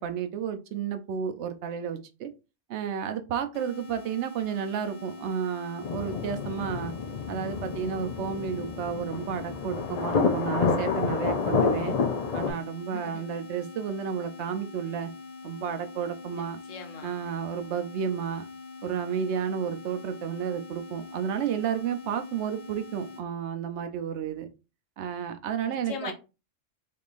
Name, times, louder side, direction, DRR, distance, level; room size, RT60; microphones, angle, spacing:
voice 1, 0.0-2.3 2.7-6.9 7.3-12.0 12.3-15.1 15.4-16.6 17.0-18.5 18.8-24.5 25.0-26.1, right 8 dB, 70° right, 9 dB, 0.9 m, -32 dB
sound 1, 3.5-23.2, left 4 dB, 50° left, 0.8 m, -44 dB
sound 2, 5.8-12.5, left 5 dB, 70° left, 0.3 m, -29 dB
voice 2, 12.9-13.3 16.3-17.1 25.7-26.1, left 6 dB, 85° left, 6 dB, 1.1 m, -40 dB
3.6 x 3.3 x 2.4 m, 0.30 s
omnidirectional pair, 1.3 m